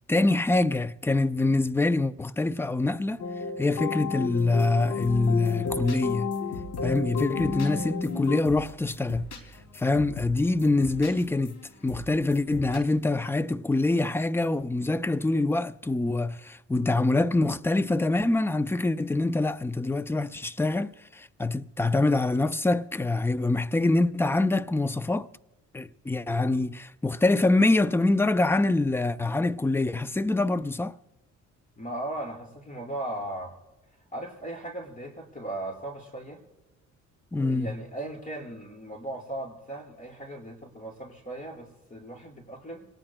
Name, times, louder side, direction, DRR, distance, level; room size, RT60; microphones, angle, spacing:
voice 1, 0.1-3.2 3.6-6.3 6.8-9.3 9.7-25.3 25.7-30.9 37.3-37.7, left 2 dB, 10° left, 0.5 m, -25 dB
sound 1, 3.2-8.4, left 5 dB, 60° left, 1.2 m, -31 dB
sound 2, 4.4-12.8, left 2 dB, 75° left, 2.7 m, -43 dB
voice 2, 31.8-33.6 34.1-36.4 37.3-42.9, right 1 dB, 25° left, 4.9 m, -37 dB
27.0 x 19.0 x 2.2 m
cardioid pair, 90°, 30 cm